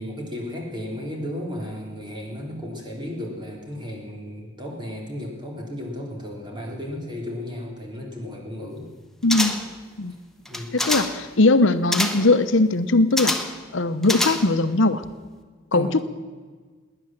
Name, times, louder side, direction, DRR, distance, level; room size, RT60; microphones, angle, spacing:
voice 1, 0.0-8.9 10.5-10.7 15.7-15.9, left 1 dB, 25° right, 0 dB, 3.4 m, -34 dB
voice 2, 9.2-9.7 10.0-10.1 10.7-13.3 13.7-15.0 15.7-16.1, left 2 dB, 70° left, 11 dB, 0.9 m, -20 dB
sound 1, 9.3-9.8 10.5-11.2 11.9-12.3 13.2-13.6 14.0-14.7 15.0-15.1, left 1 dB, ahead, 1.2 m, -26 dB
18.5 x 10.0 x 7.4 m, 1.5 s
head